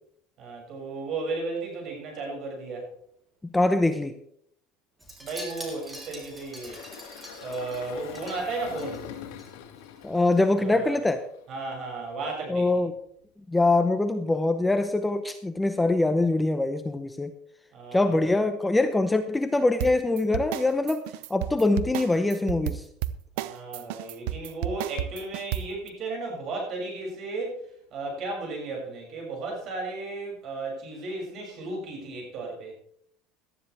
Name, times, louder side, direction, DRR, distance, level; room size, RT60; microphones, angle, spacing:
voice 1, 0.4-2.9 5.2-6.8 7.4-9.0 10.6-11.0 11.5-12.7 17.7-18.1 23.3-27.6 27.9-32.7, right 3 dB, 45° right, 0 dB, 6.8 m, -34 dB
voice 2, 3.5-4.2 10.0-11.3 12.5-12.9 13.5-17.3 17.9-22.9, left 2 dB, 10° left, 8 dB, 0.7 m, -24 dB
Wind chime, 5.0-9.5 9.8-10.1 10.3-10.4, equal, 10° right, 3.5 m, -44 dB
Engine, 6.4-11.6, left 9 dB, 90° left, 2.3 m, -43 dB
sound 1, 19.8-25.9, right 13 dB, 75° right, 0.6 m, -32 dB
18.0 x 12.5 x 3.4 m, 0.66 s
cardioid pair, 140°, 0 cm